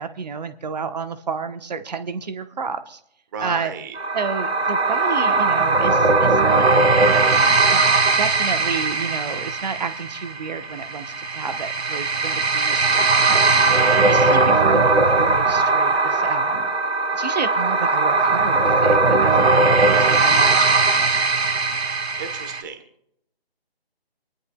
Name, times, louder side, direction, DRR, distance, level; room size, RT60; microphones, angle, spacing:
voice 1, 0.0-3.0 3.4-3.8 4.1-6.6 7.7-7.9 8.2-13.6 14.1-16.7 17.1-21.2, right 5 dB, 40° right, 9 dB, 1.1 m, -30 dB
voice 2, 3.3-4.0 13.6-13.8 22.2-22.8, right 5 dB, 20° right, 7 dB, 1.2 m, -34 dB
sound 1, 3.9-22.6, right 3 dB, 85° right, 1.7 m, -19 dB
27.5 x 10.5 x 2.3 m, 0.76 s
figure-of-eight pair, 160°, 31 cm